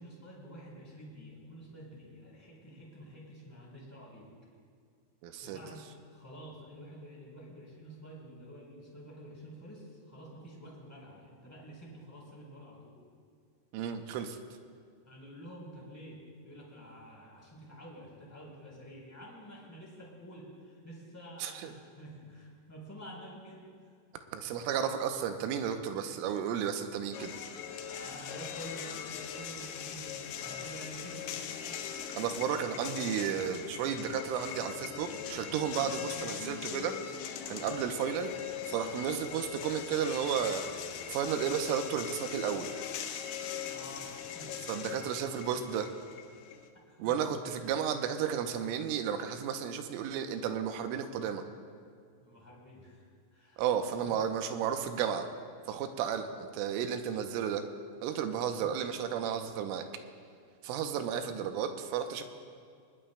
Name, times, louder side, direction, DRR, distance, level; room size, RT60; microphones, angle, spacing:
voice 1, 0.0-4.3 5.4-13.0 15.0-23.7 27.8-31.4 37.6-37.8 43.7-45.1 46.9-47.2 47.6-47.7 52.2-53.6 54.0-54.3 60.8-61.3, equal, 5° left, -4 dB, 2.9 m, -49 dB
voice 2, 5.2-5.6 13.7-14.4 21.4-21.7 24.3-27.4 32.2-36.9 37.5-38.3 38.7-40.6 41.1-42.8 44.7-45.9 47.0-51.4 53.6-55.3 55.7-57.6 58.0-59.9 60.6-62.2, right 8 dB, 85° right, 6 dB, 3.2 m, -33 dB
sound 1, 27.1-46.7, left 8 dB, 85° left, 3.5 m, -41 dB
21.5 x 20.0 x 2.3 m, 2.2 s
omnidirectional pair, 5.9 m